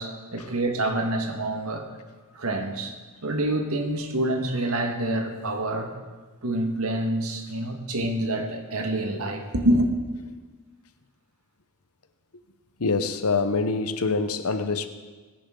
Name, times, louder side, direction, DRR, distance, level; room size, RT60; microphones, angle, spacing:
voice 1, 0.0-1.9 2.3-2.9 3.2-5.9 6.4-9.9, right 1 dB, 70° right, 1.7 m, -26 dB
voice 2, 12.8-14.9, left 4 dB, 80° left, 0.9 m, -25 dB
21.0 x 10.0 x 3.8 m
head